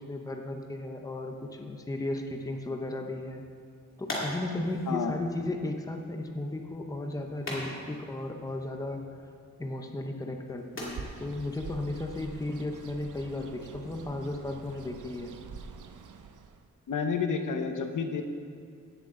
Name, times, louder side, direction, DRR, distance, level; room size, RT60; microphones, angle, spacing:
voice 1, 0.0-3.4 4.0-9.0 9.6-15.3, left 2 dB, 10° left, 3 dB, 0.7 m, -35 dB
sound 1, 3.2-12.9, left 1 dB, 45° left, 2.4 m, -44 dB
Bird, 10.8-16.7, right 5 dB, 90° right, 0.7 m, -46 dB
voice 2, 16.9-18.2, left 6 dB, 85° left, 6 dB, 0.9 m, -30 dB
16.5 x 7.7 x 3.7 m, 2.2 s
wide cardioid pair, 170°, 30 cm